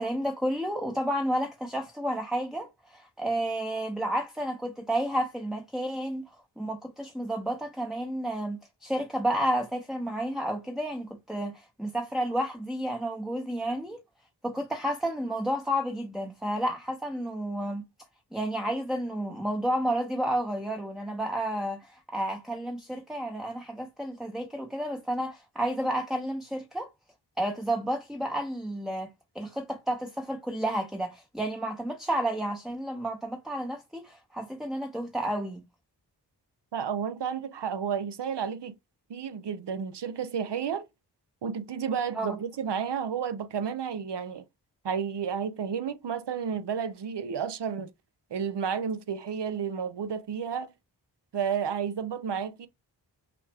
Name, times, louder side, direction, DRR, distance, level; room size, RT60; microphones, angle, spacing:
voice 1, 0.0-6.3 6.6-14.0 14.4-17.8 18.3-26.9 27.4-35.6 42.1-42.4, right 1 dB, ahead, 0.6 m, -31 dB
voice 2, 36.7-38.7 39.1-40.9 41.4-44.4 44.8-47.9 48.3-50.7 51.3-52.7, right 7 dB, 70° right, 0.7 m, -31 dB
5.8 x 2.4 x 3.3 m
cardioid pair, 40°, 43 cm